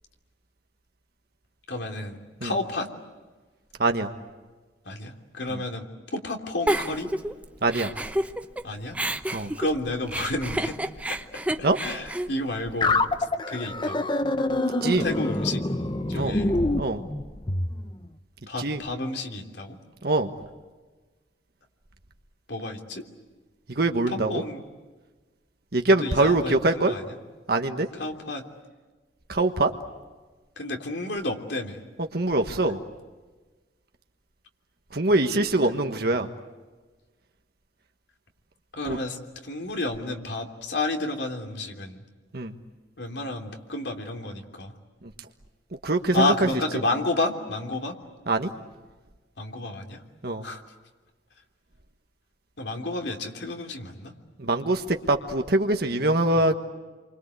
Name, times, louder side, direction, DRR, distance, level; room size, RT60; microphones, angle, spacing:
voice 1, 1.7-2.9 4.8-5.9 6.1-7.1 8.6-9.0 9.6-10.8 11.1-11.2 11.6-14.1 15.0-15.6 16.1-16.6 18.5-19.8 22.5-23.0 24.1-24.6 26.0-27.2 27.9-28.4 30.6-31.8 36.0-36.1 38.7-42.0 43.0-44.7 46.1-48.0 49.4-50.0 50.4-50.6 52.6-54.1 56.3-56.4, left 2 dB, 70° left, 3 dB, 3.2 m, -31 dB
Giggle, 6.7-8.6 8.9-13.2, right 1 dB, 10° right, 0.9 m, -30 dB
sound 1, 12.8-17.7, left 2 dB, 25° left, 0.9 m, -26 dB
voice 2, 23.7-24.4 25.7-26.9 27.5-27.9 29.3-29.7 32.1-32.8 34.9-36.3 38.9-39.0 42.3-42.5 45.8-46.3 48.3-48.5 50.2-50.4 54.4-56.5, right 2 dB, 55° right, 5 dB, 1.4 m, -23 dB
29.0 x 24.5 x 8.3 m, 1.3 s
head